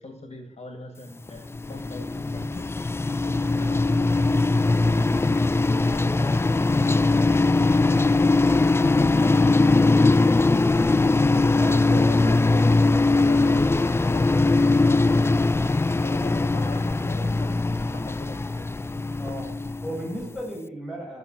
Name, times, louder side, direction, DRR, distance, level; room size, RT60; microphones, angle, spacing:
voice 1, 0.0-2.7 3.3-5.4 5.9-8.3 8.8-10.3 11.9-18.7, left 2 dB, 55° left, 4 dB, 1.8 m, -40 dB
sound 1, 1.3-20.3, left 3 dB, 20° left, 0.4 m, -21 dB
voice 2, 11.5-12.2 19.2-21.2, right 1 dB, ahead, -3 dB, 6.4 m, -35 dB
14.0 x 7.0 x 6.0 m, 0.72 s
wide cardioid pair, 95°, 13 cm